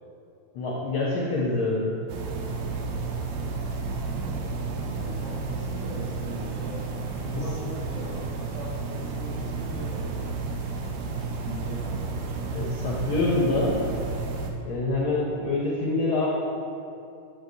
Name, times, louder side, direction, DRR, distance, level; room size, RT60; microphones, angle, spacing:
voice 1, 0.5-1.9 12.5-13.8 14.6-16.3, left 2 dB, 70° left, -5 dB, 1.2 m, -25 dB
sound 1, 2.1-14.5, right 4 dB, 75° right, 1.8 m, -32 dB
voice 2, 4.8-10.0 11.4-12.3, equal, 30° right, -7 dB, 1.5 m, -40 dB
7.9 x 7.7 x 2.7 m, 2.7 s
omnidirectional pair, 3.4 m